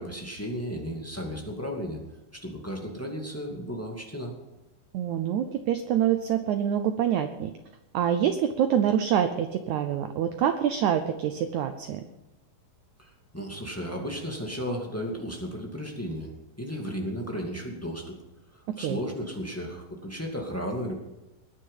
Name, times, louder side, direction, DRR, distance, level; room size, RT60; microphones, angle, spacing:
voice 1, 0.0-2.0 2.3-4.3 13.0-16.3 16.6-18.2 18.8-21.0, equal, 5° left, 0 dB, 1.2 m, -34 dB
voice 2, 4.9-7.5 7.9-12.0 18.8-19.0, right 9 dB, 90° right, 9 dB, 1.6 m, -26 dB
20.0 x 10.0 x 5.6 m, 0.99 s
omnidirectional pair, 4.4 m